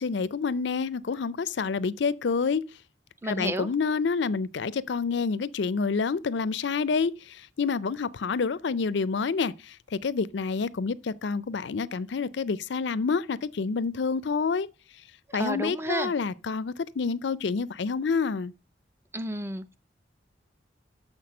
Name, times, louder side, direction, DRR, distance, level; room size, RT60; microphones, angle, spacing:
voice 1, 0.0-2.6 3.2-14.7 15.3-18.5, left 5 dB, 70° left, 0.5 m, -28 dB
voice 2, 3.2-3.7 15.4-16.1 19.1-19.7, right 1 dB, 15° right, 0.5 m, -31 dB
7.1 x 6.0 x 6.4 m
head